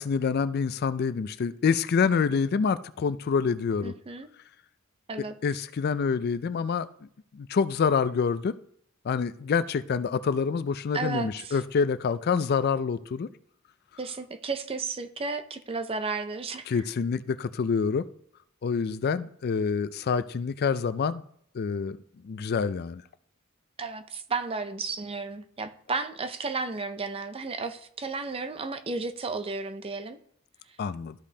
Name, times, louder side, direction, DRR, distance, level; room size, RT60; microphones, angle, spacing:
voice 1, 0.0-3.9 5.4-6.9 7.3-8.5 9.1-13.3 16.7-18.0 18.6-21.2 21.5-22.0 22.2-23.0 30.8-31.1, left 5 dB, 50° left, 14 dB, 0.4 m, -27 dB
voice 2, 3.8-4.3 5.1-5.4 10.9-11.6 14.0-16.6 23.8-30.2, right 4 dB, 25° right, 9 dB, 0.5 m, -33 dB
13.5 x 5.1 x 2.8 m, 0.64 s
head